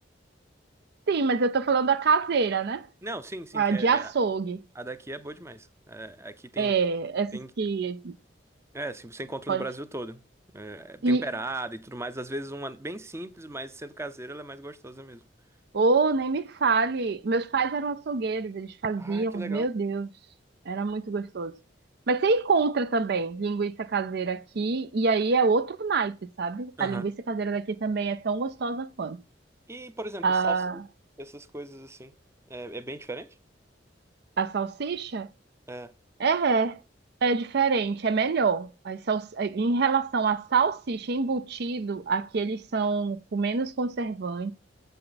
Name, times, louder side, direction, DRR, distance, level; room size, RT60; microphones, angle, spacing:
voice 1, 1.1-2.9 3.5-4.6 6.6-8.1 9.5-9.7 11.0-11.3 15.7-20.1 20.7-21.6 22.1-29.2 30.2-30.8 34.4-35.3 36.2-36.8 37.2-44.5, right 4 dB, 60° right, 0.5 m, -26 dB
voice 2, 3.0-4.1 4.7-6.7 7.3-7.5 8.7-10.2 10.5-15.2 19.0-19.7 26.8-27.1 29.7-30.8 31.2-32.1 32.5-33.3 35.7-35.9, right 1 dB, 15° right, 0.6 m, -38 dB
9.2 x 7.8 x 4.0 m
head